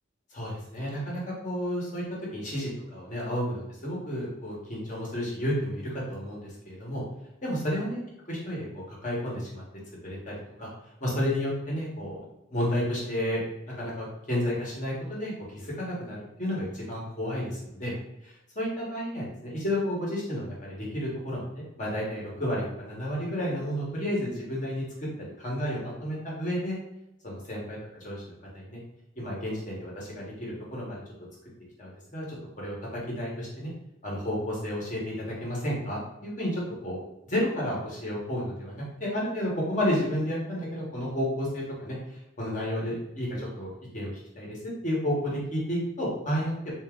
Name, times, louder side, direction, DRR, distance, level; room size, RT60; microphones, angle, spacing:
voice 1, 0.3-2.0 2.3-7.0 7.4-8.0 8.3-9.6 10.0-10.7 11.0-12.2 12.5-17.9 18.2-24.8 25.2-26.8 27.2-28.8 29.2-31.0 31.8-32.3 32.6-33.7 34.0-37.0 37.3-42.0 42.4-44.1 44.4-44.6 44.8-46.7, equal, 40° left, -4 dB, 1.2 m, -31 dB
3.5 x 2.7 x 3.6 m, 0.89 s
head